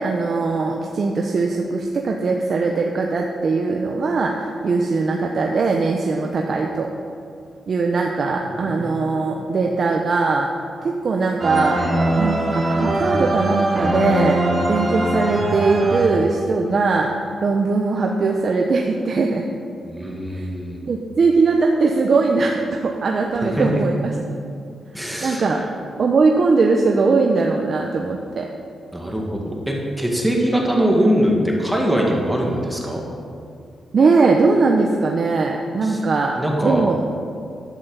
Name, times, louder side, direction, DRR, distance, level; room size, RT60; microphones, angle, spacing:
voice 1, 0.0-6.9 7.7-10.5 10.8-11.8 12.2-14.4 14.7-17.1 17.4-19.4 20.3-20.5 20.9-24.1 25.2-25.6 26.0-28.5 33.9-37.0, right 4 dB, 50° right, 1 dB, 1.0 m, -20 dB
voice 2, 8.5-9.3 19.8-20.8 23.4-23.8 24.9-25.6 28.9-33.0 35.8-36.0 36.4-36.9, equal, 5° right, -1 dB, 2.1 m, -22 dB
sound 1, 11.4-16.6, right 1 dB, 30° right, 2.0 m, -21 dB
11.5 x 8.0 x 7.1 m, 2.3 s
cardioid pair, 105°, 0 cm